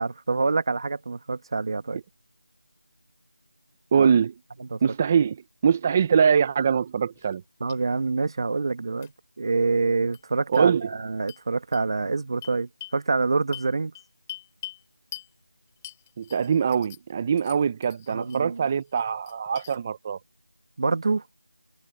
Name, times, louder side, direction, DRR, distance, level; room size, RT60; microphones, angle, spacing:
voice 1, 0.0-2.0 4.0-4.1 4.6-4.8 7.6-9.1 9.4-13.9 18.1-18.7 20.8-21.2, right 3 dB, 35° right, 1.6 m, -26 dB
voice 2, 3.9-4.3 4.8-7.4 10.5-10.9 16.2-20.2, right 7 dB, 10° right, 0.5 m, -23 dB
sound 1, 7.1-7.4 7.7-7.8 9.0-9.1 10.1-10.2 10.5-10.6 11.3-11.4 11.7-11.8 12.4-13.0 13.5-14.8 15.1-15.3 15.8-17.1 17.4-18.4 18.8-19.8, left 12 dB, 10° left, 4.7 m, -43 dB
figure-of-eight pair, 175°, 4 cm